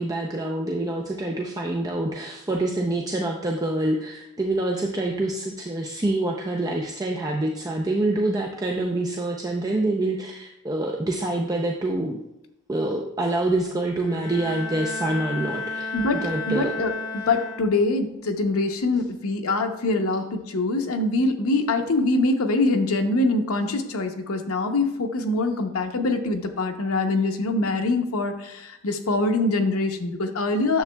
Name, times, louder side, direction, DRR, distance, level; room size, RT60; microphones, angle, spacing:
voice 1, 0.0-12.2 12.7-15.9 16.2-16.7, right 2 dB, 15° right, 0 dB, 0.5 m, -26 dB
Bowed string instrument, 14.0-18.0, left 3 dB, 35° left, 1.8 m, -33 dB
voice 2, 15.9-30.8, left 2 dB, 80° left, 6 dB, 0.8 m, -24 dB
9.5 x 6.9 x 2.2 m, 0.89 s
head